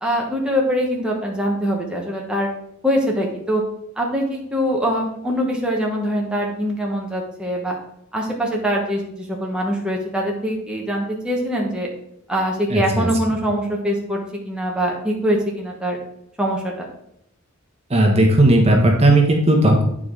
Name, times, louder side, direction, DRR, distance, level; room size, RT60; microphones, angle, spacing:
voice 1, 0.0-2.5 2.8-3.6 4.0-7.8 8.1-11.9 12.3-14.2 14.4-16.0 16.4-16.9, equal, 5° right, -2 dB, 1.1 m, -23 dB
voice 2, 12.7-13.1 17.9-19.8, right 1 dB, 30° right, 1 dB, 1.2 m, -15 dB
9.4 x 4.9 x 3.8 m, 0.76 s
head